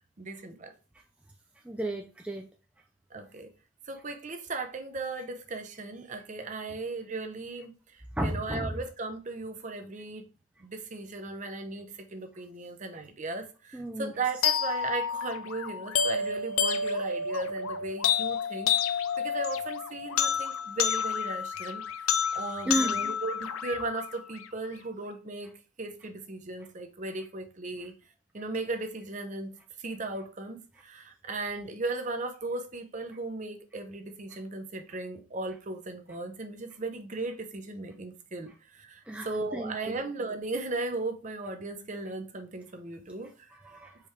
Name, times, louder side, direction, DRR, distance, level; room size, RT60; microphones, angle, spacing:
voice 1, 0.2-0.7 3.1-3.5 3.9-10.3 10.6-25.5 25.8-27.9 28.3-29.5 29.8-43.5, right 2 dB, 35° right, 0.6 m, -37 dB
voice 2, 1.7-2.5 8.2-8.7 13.7-14.1 22.7-23.0 39.1-40.0 43.6-44.0, right 1 dB, 5° right, 0.3 m, -32 dB
sound 1, 14.4-24.5, left 7 dB, 90° left, 0.5 m, -29 dB
4.6 x 3.4 x 3.2 m
head